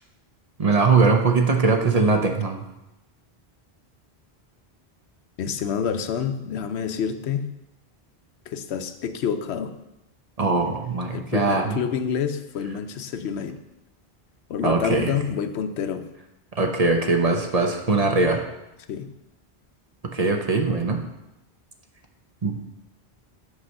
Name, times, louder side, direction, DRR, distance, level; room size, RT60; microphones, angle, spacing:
voice 1, 0.6-2.7 10.4-11.8 14.6-15.1 16.6-18.4 20.1-21.0 22.4-22.6, right 4 dB, 40° right, 3 dB, 0.9 m, -21 dB
voice 2, 5.4-7.5 8.5-9.7 11.1-13.6 14.5-16.1 18.9-19.1, left 7 dB, 85° left, 10 dB, 0.9 m, -28 dB
8.3 x 4.8 x 6.4 m, 0.93 s
omnidirectional pair, 1.1 m